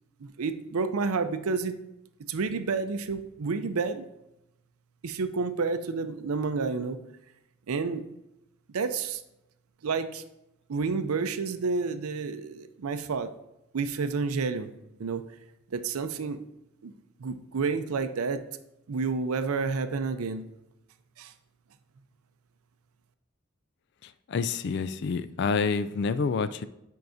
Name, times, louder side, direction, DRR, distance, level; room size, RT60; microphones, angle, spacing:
voice 1, 0.2-1.8 2.3-4.1 5.0-7.0 7.7-8.0 8.7-9.2 9.8-10.2 10.7-13.3 13.7-14.7 15.0-15.2 15.7-16.4 16.8-16.9 17.2-18.4 18.9-20.4 21.2-21.3, right 4 dB, 85° right, 0.5 m, -30 dB
voice 2, 24.0-26.6, left 5 dB, 50° left, 0.3 m, -28 dB
10.5 x 4.6 x 2.7 m
head